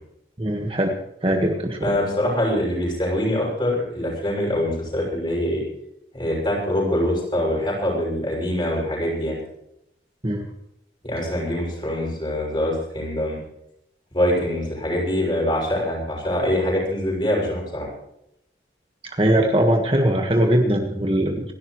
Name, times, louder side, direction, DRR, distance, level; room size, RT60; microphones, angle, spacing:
voice 1, 0.4-1.0 1.2-1.8 10.2-10.5 19.1-21.5, right 1 dB, 30° right, 2 dB, 1.6 m, -20 dB
voice 2, 1.8-5.6 6.1-9.4 11.0-13.4 14.1-17.9, left 1 dB, 25° left, -3 dB, 6.6 m, -24 dB
27.0 x 12.0 x 3.2 m, 0.80 s
head